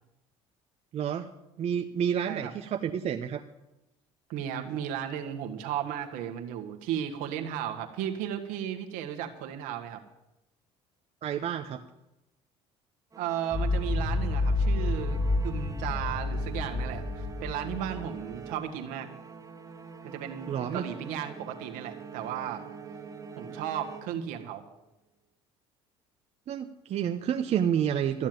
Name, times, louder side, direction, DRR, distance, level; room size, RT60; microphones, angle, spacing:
voice 1, 0.9-1.3 1.6-3.4 11.2-11.8 20.5-20.8 26.5-28.3, right 9 dB, 50° right, 5 dB, 0.8 m, -29 dB
voice 2, 4.3-10.0 13.2-19.1 20.0-20.5 20.7-22.6 23.4-24.6, right 10 dB, 75° right, 5 dB, 1.7 m, -35 dB
sound 1, 13.1-24.6, right 5 dB, 25° right, 1.6 m, -45 dB
sound 2, 13.5-18.3, left 2 dB, 5° left, 1.7 m, -29 dB
14.0 x 7.3 x 9.4 m, 0.92 s
supercardioid pair, 75°, 14 cm